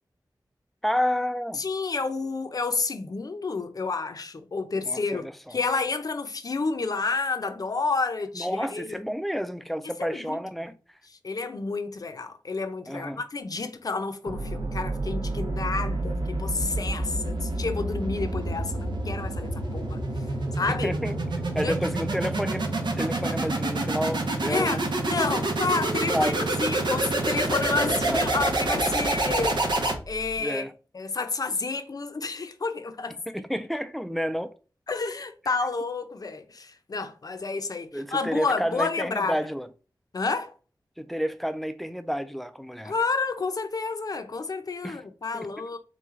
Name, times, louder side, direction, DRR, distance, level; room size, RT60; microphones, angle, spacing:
voice 1, 0.8-1.6 4.9-5.6 8.3-10.8 12.9-13.2 20.7-21.2 21.6-22.7 23.0-24.9 26.1-26.5 27.8-28.3 30.4-30.7 33.3-34.5 37.9-39.7 41.0-42.9 44.8-45.0 45.3-45.5, equal, ahead, 0.4 m, -30 dB
voice 2, 1.5-9.0 10.0-10.4 11.2-20.0 20.6-20.9 21.6-21.8 23.2-23.4 24.5-26.3 26.6-29.6 30.1-30.6 30.9-33.2 34.9-39.4 40.1-40.5 42.8-45.8, left 4 dB, 55° left, 0.6 m, -30 dB
sound 1, 14.3-30.4, right 2 dB, 85° right, 0.9 m, -28 dB
3.7 x 3.1 x 3.6 m
wide cardioid pair, 85°, 8 cm